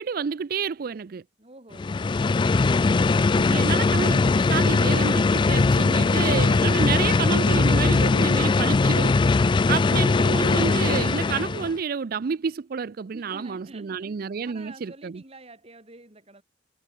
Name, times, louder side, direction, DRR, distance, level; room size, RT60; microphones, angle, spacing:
voice 1, 0.0-1.2 3.3-9.2 9.7-15.1, right 6 dB, 55° right, 0.4 m, -29 dB
voice 2, 1.4-2.5 13.1-16.4, right 2 dB, 35° right, 4.3 m, -48 dB
sound 1, 1.7-11.8, left 3 dB, 25° left, 0.3 m, -20 dB
head